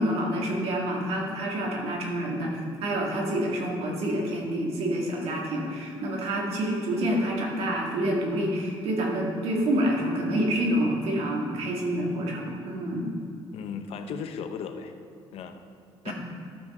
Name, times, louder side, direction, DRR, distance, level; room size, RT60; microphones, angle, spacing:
voice 1, 0.0-13.1 16.0-16.1, right 1 dB, 75° right, -1 dB, 1.9 m, -27 dB
voice 2, 13.5-14.9 15.3-15.6 16.0-16.1, left 6 dB, 75° left, 8 dB, 0.7 m, -36 dB
12.0 x 6.0 x 4.3 m, 2.4 s
cardioid pair, 130°, 10 cm